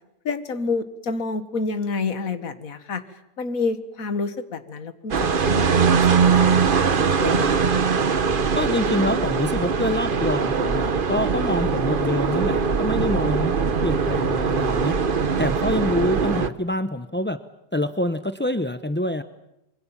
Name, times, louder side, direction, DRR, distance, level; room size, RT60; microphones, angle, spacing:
voice 1, 0.2-7.8, left 4 dB, 55° left, 10 dB, 2.0 m, -29 dB
sound 1, 5.1-16.5, right 6 dB, 35° right, 1.0 m, -21 dB
voice 2, 8.5-15.0 15.4-17.4 17.7-19.2, left 1 dB, 15° left, 10 dB, 0.4 m, -26 dB
26.5 x 24.0 x 7.4 m, 0.87 s
omnidirectional pair, 1.8 m